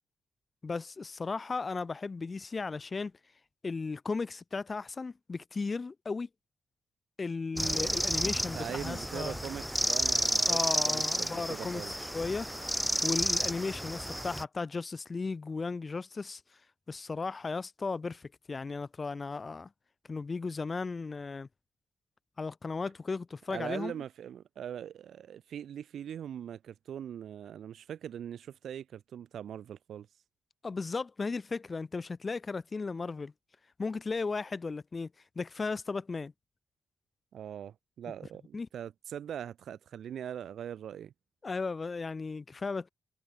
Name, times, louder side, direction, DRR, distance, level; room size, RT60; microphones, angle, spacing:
voice 1, 0.6-3.1 3.6-6.3 7.2-9.4 10.5-11.8 12.1-12.5 13.0-16.4 16.9-19.7 20.1-21.5 22.4-23.9 30.6-33.3 33.8-35.1 35.3-36.3 38.5-38.7 41.4-42.9, left 4 dB, 30° left, 1.3 m, -35 dB
voice 2, 7.5-8.0 8.4-10.6 10.8-11.9 23.5-30.1 37.3-41.1, right 9 dB, 75° right, 2.3 m, -41 dB
sound 1, 7.6-14.4, equal, ahead, 0.5 m, -31 dB
wide cardioid pair, 135°, 0 cm